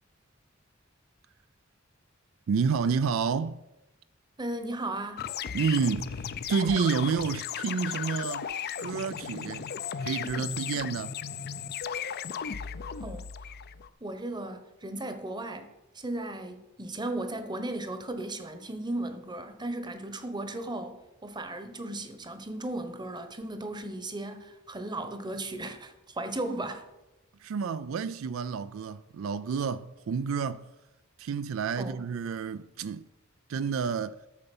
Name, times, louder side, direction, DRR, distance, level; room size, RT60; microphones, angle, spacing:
voice 1, 2.5-3.6 5.5-8.5 8.8-9.7 10.0-11.1 27.4-30.7 31.2-33.0 33.5-34.2, right 6 dB, 70° right, 0.4 m, -29 dB
voice 2, 4.4-5.2 13.0-13.3 14.0-26.9 31.8-32.0, right 1 dB, 20° right, 1.0 m, -36 dB
sound 1, 5.2-13.9, left 8 dB, 50° left, 0.5 m, -36 dB
12.5 x 6.8 x 5.4 m
head